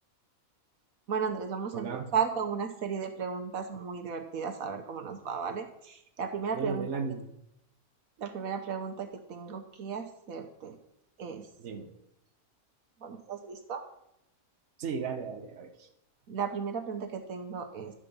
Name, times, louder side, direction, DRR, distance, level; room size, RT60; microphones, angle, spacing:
voice 1, 1.1-6.9 8.2-10.8 11.2-11.5 13.0-13.8 16.3-17.9, right 6 dB, 70° right, 5 dB, 1.4 m, -35 dB
voice 2, 1.7-2.1 6.5-7.2 11.6-11.9 14.8-15.9, right 5 dB, 55° right, 4 dB, 1.3 m, -35 dB
11.5 x 4.9 x 6.9 m, 0.82 s
omnidirectional pair, 1.5 m